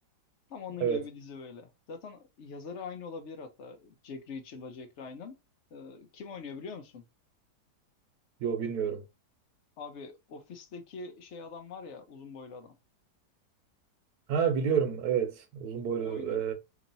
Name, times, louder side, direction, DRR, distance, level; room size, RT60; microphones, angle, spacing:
voice 1, 0.5-5.4 5.7-7.0 9.8-12.8 16.0-16.4, left 5 dB, 55° left, 0.8 m, -43 dB
voice 2, 8.4-9.0 14.3-16.5, right 7 dB, 70° right, 1.2 m, -29 dB
3.0 x 2.8 x 3.9 m
omnidirectional pair, 1.8 m